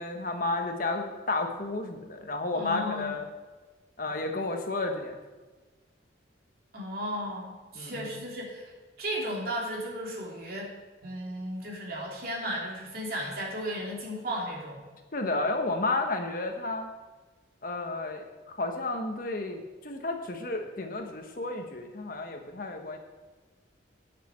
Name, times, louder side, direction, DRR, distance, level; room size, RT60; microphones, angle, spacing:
voice 1, 0.0-3.2 4.0-5.2 7.7-8.1 15.1-16.9 17.6-23.0, left 2 dB, 50° left, 4 dB, 1.2 m, -32 dB
voice 2, 2.5-3.1 6.7-8.7 9.0-10.7 11.0-14.8, equal, 55° right, -3 dB, 3.0 m, -35 dB
9.1 x 6.7 x 7.4 m, 1.3 s
head